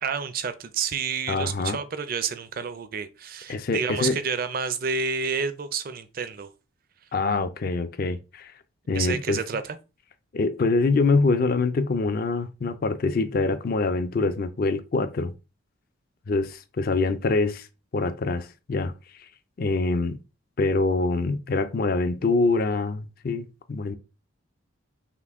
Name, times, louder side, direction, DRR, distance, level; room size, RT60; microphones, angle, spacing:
voice 1, 0.0-6.5 8.9-9.8, right 6 dB, 45° right, 0.4 m, -29 dB
voice 2, 1.3-1.8 3.5-4.2 7.1-8.5 8.9-9.4 10.3-15.3 16.3-17.7 17.9-18.9 19.6-20.2 20.6-23.9, left 3 dB, 45° left, 0.4 m, -25 dB
5.7 x 2.2 x 3.5 m
head